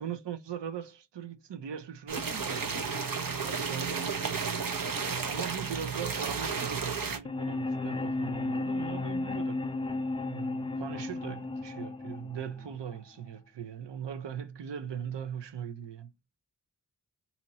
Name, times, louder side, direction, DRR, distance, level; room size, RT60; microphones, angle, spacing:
voice 1, 0.0-3.0 3.4-4.7 5.3-9.7 10.3-16.1, right 8 dB, 90° right, 0.7 m, -40 dB
sound 1, 2.1-7.2, right 5 dB, 55° right, 0.8 m, -33 dB
sound 2, 7.2-13.2, left 2 dB, 15° left, 0.3 m, -34 dB
2.9 x 2.8 x 3.9 m
wide cardioid pair, 85°, 41 cm